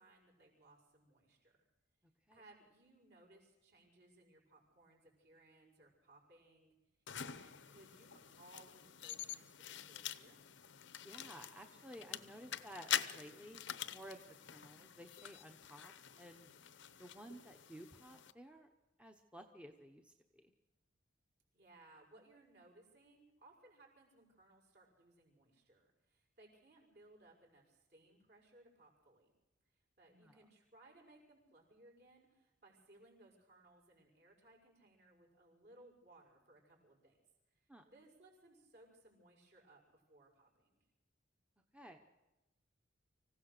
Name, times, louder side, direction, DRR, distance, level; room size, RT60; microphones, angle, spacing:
voice 1, 0.0-1.5 2.3-6.7 7.2-10.4 21.5-29.3 29.7-37.2 37.5-40.9, right 2 dB, 55° right, -1 dB, 5.8 m, -64 dB
sound 1, 7.1-18.3, left 10 dB, 65° left, 0.8 m, -46 dB
voice 2, 11.0-13.6 13.9-14.2 14.5-16.5 17.0-18.7 19.0-20.5 30.1-30.4 37.7-37.8 41.7-42.0, equal, 5° right, 4 dB, 1.0 m, -54 dB
25.5 x 16.0 x 6.7 m, 1.0 s
head